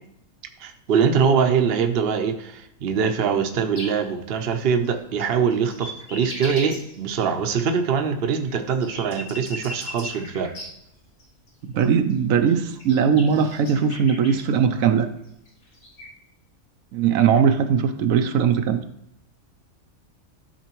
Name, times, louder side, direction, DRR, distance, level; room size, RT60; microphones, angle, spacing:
voice 1, 0.6-10.5, right 6 dB, 55° right, 6 dB, 0.8 m, -23 dB
sound 1, 3.8-3.9 4.1-7.3 7.6-10.7 11.2-11.5 11.8-11.9 12.1-12.2 12.5-14.4 15.3-16.0, left 1 dB, 75° left, 2.2 m, -38 dB
voice 2, 11.7-15.1 16.9-18.8, right 7 dB, 80° right, 8 dB, 1.0 m, -20 dB
13.0 x 4.4 x 3.0 m, 0.81 s
omnidirectional pair, 1.4 m